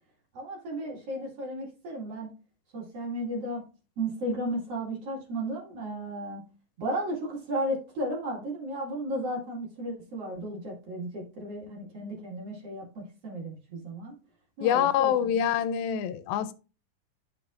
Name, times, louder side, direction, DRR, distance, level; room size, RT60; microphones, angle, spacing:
voice 1, 0.3-2.3 2.7-3.6 4.0-6.4 6.8-14.1 14.6-15.4, right 1 dB, 50° right, 2.6 m, -34 dB
voice 2, 14.6-16.5, left 9 dB, 90° left, 2.4 m, -25 dB
10.5 x 5.7 x 2.4 m
omnidirectional pair, 4.1 m